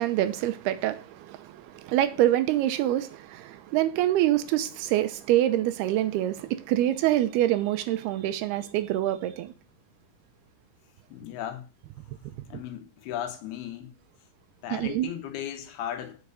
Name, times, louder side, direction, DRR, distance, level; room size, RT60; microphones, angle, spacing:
voice 1, 0.0-9.5 14.7-15.1, right 13 dB, 90° right, 2.9 m, -26 dB
voice 2, 11.1-11.7 12.5-13.9 14.6-16.2, left 10 dB, 85° left, 3.2 m, -36 dB
8.2 x 6.1 x 6.8 m
omnidirectional pair, 4.4 m